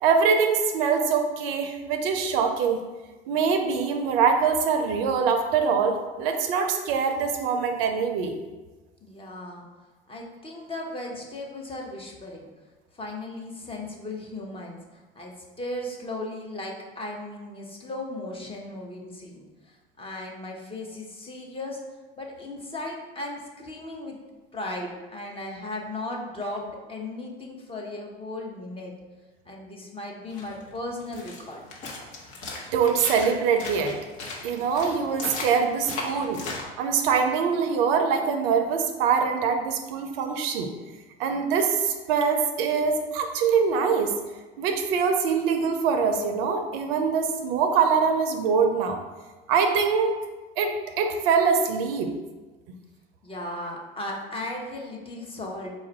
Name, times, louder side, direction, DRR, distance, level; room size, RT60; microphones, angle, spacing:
voice 1, 0.0-2.8 3.3-8.4 32.7-34.0 34.4-36.4 36.8-40.7 41.2-44.1 44.6-49.0 49.5-50.2 50.6-52.1, right 6 dB, 65° right, 5 dB, 0.6 m, -23 dB
voice 2, 9.0-9.7 10.1-12.5 12.9-14.8 15.2-21.8 22.2-24.2 24.5-28.9 29.5-31.6 53.2-55.7, left 2 dB, 20° left, -1 dB, 0.8 m, -36 dB
sound 1, 30.3-36.6, left 2 dB, 55° left, 1.0 m, -37 dB
4.1 x 2.4 x 4.4 m, 1.2 s
hypercardioid pair, 80°, 31 cm